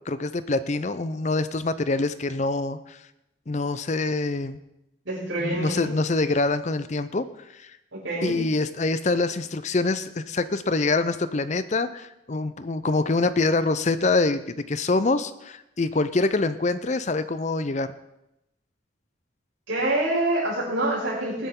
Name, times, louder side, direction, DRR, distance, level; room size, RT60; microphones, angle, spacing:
voice 1, 0.1-3.0 3.5-4.6 5.4-7.3 7.5-7.7 8.2-17.9, left 3 dB, 35° left, 13 dB, 0.5 m, -25 dB
voice 2, 5.0-5.9 7.9-8.4 19.7-21.5, right 1 dB, 75° right, -10 dB, 6.0 m, -26 dB
20.0 x 10.0 x 3.7 m, 0.87 s
head